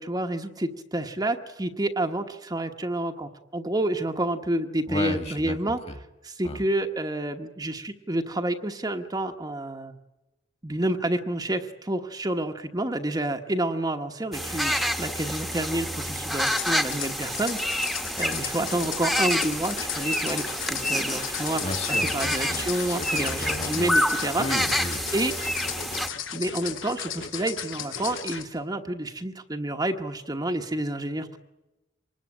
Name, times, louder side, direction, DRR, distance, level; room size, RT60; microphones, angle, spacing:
voice 1, 0.0-5.8 6.2-9.9 10.6-17.9 18.2-24.5 25.1-25.3 26.3-31.4, right 1 dB, 20° right, 5 dB, 1.1 m, -29 dB
voice 2, 4.9-6.0 6.4-6.6 21.6-24.0 24.4-25.0, left 1 dB, 35° left, 8 dB, 2.0 m, -33 dB
sound 1, 14.3-26.1, equal, ahead, 1.2 m, -28 dB
sound 2, 16.4-28.4, left 11 dB, 85° left, 3.2 m, -36 dB
Electric guitar, 19.8-28.5, left 4 dB, 65° left, 1.6 m, -41 dB
25.5 x 20.5 x 8.7 m, 1.0 s
head